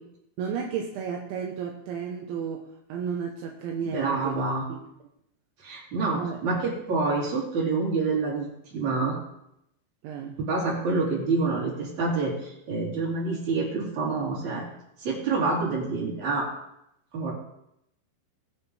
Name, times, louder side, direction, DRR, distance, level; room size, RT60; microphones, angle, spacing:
voice 1, 0.4-4.3 4.7-4.9 6.2-6.4 10.0-10.4, right 7 dB, 75° right, 1 dB, 3.3 m, -33 dB
voice 2, 3.9-4.7 5.6-9.2 10.4-14.7 15.0-16.5 17.1-17.3, right 3 dB, 40° right, -4 dB, 4.8 m, -27 dB
20.0 x 9.6 x 3.4 m, 0.80 s
omnidirectional pair, 5.5 m